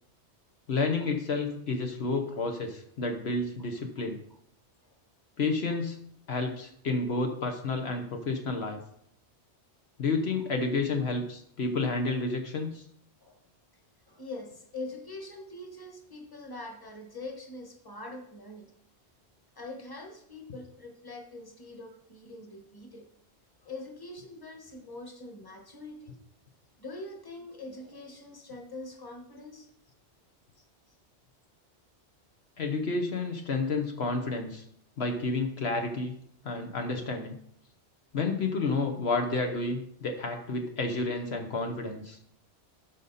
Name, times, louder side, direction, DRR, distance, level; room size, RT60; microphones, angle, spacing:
voice 1, 0.7-4.2 5.4-6.0 6.3-8.8 10.0-12.8 32.6-34.6 35.0-36.1 36.4-37.4 38.1-42.2, left 3 dB, 65° left, 4 dB, 1.2 m, -30 dB
voice 2, 14.1-18.7 19.5-23.1 23.6-26.1 26.8-29.7, left 2 dB, 20° left, 3 dB, 1.4 m, -43 dB
12.0 x 5.2 x 4.1 m, 0.70 s
omnidirectional pair, 1.2 m